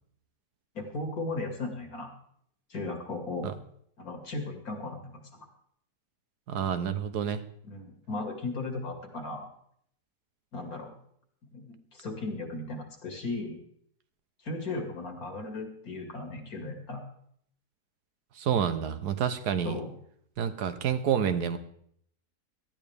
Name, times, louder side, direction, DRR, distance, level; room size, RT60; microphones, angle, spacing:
voice 1, 0.7-2.1 2.7-3.5 4.0-5.5 7.6-9.5 10.5-10.9 11.5-13.6 14.4-17.0 19.6-19.9, left 2 dB, 65° left, 3 dB, 2.7 m, -36 dB
voice 2, 6.5-7.4 18.4-19.8 20.4-21.6, right 8 dB, 85° right, 10 dB, 1.5 m, -28 dB
18.0 x 13.0 x 3.5 m, 0.68 s
omnidirectional pair, 1.7 m